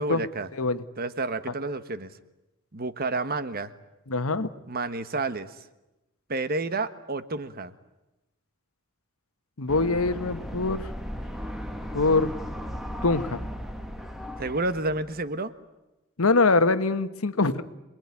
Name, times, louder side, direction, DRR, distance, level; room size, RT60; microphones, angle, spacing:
voice 1, 0.0-0.5 1.0-2.1 2.7-3.7 4.7-5.5 6.3-7.7 14.4-15.5, right 3 dB, 45° right, 12 dB, 1.3 m, -30 dB
voice 2, 4.1-4.5 9.6-10.9 11.9-12.3 13.0-13.4 16.2-17.6, left 3 dB, 90° left, 11 dB, 1.3 m, -23 dB
sound 1, 9.7-15.3, equal, ahead, 1.7 m, -36 dB
26.5 x 20.5 x 9.8 m, 1.0 s
head